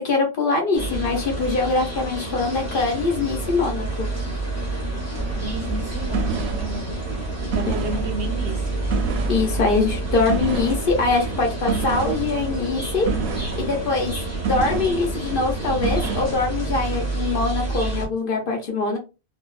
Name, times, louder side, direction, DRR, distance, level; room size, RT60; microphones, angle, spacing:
voice 1, 0.0-4.1 7.7-7.8 9.3-14.1 14.4-19.0, left 3 dB, 50° left, 0.7 m, -23 dB
sound 1, 0.7-18.1, right 2 dB, 15° left, 0.7 m, -29 dB
sound 2, 5.1-16.4, right 4 dB, 80° right, 1.0 m, -29 dB
voice 2, 5.4-6.9 7.4-8.8, right 2 dB, 60° right, 0.8 m, -32 dB
2.6 x 2.2 x 2.3 m
omnidirectional pair, 1.4 m